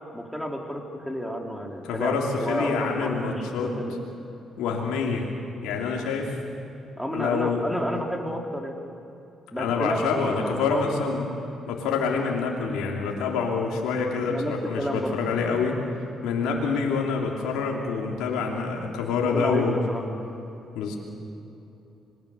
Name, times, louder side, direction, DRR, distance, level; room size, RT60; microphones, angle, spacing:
voice 1, 0.1-3.9 7.0-8.8 9.5-11.1 14.2-15.2 17.1-17.4 19.2-20.0, equal, ahead, 1 dB, 4.5 m, -31 dB
voice 2, 1.8-3.7 4.6-5.3 5.6-6.4 7.1-7.7 9.6-11.3 11.7-15.8 16.2-19.8 20.7-21.0, left 5 dB, 80° left, -1 dB, 3.0 m, -26 dB
26.5 x 21.0 x 6.9 m, 2.9 s
supercardioid pair, 60°, 0 cm